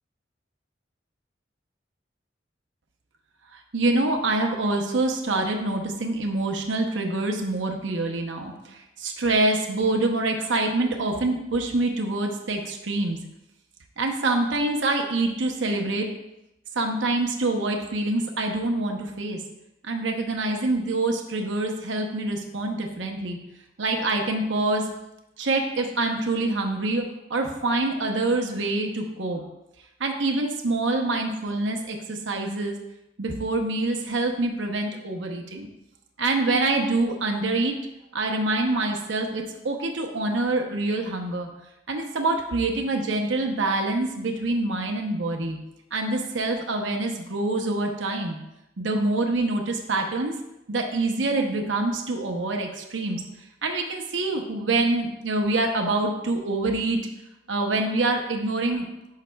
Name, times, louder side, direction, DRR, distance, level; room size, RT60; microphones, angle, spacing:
voice 1, 3.5-13.2 14.0-16.1 16.7-19.4 19.8-23.4 23.8-24.9 25.4-27.0 27.3-29.4 30.0-32.8 33.2-35.7 36.2-37.7 38.1-41.5 41.9-45.6 45.9-48.4 48.8-50.3 50.7-53.2 53.6-57.0 57.5-58.9, right 2 dB, 85° right, 3 dB, 0.8 m, -25 dB
11.0 x 5.7 x 2.3 m, 0.90 s
head